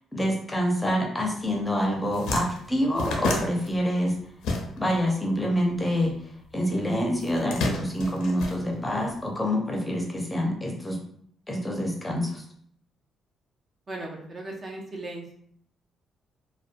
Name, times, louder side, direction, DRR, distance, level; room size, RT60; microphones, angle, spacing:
voice 1, 0.1-4.2 4.8-6.1 6.5-11.0 11.5-12.4, equal, 15° left, 0 dB, 0.6 m, -26 dB
sound 1, 1.5-1.7 1.9-5.1 5.3-6.5 7.2-9.2, left 2 dB, 90° left, 0.4 m, -31 dB
voice 2, 13.9-15.3, right 2 dB, 35° right, 0 dB, 0.5 m, -37 dB
2.5 x 2.1 x 2.5 m, 0.64 s
cardioid pair, 90°, 0 cm